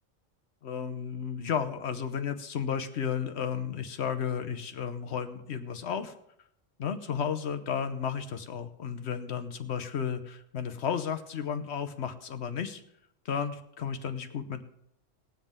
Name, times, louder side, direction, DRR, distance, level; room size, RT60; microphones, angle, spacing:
voice 1, 0.6-6.1 6.8-12.8 13.2-14.6, left 7 dB, 60° left, 9 dB, 1.1 m, -33 dB
20.5 x 7.7 x 3.6 m, 0.75 s
omnidirectional pair, 1.3 m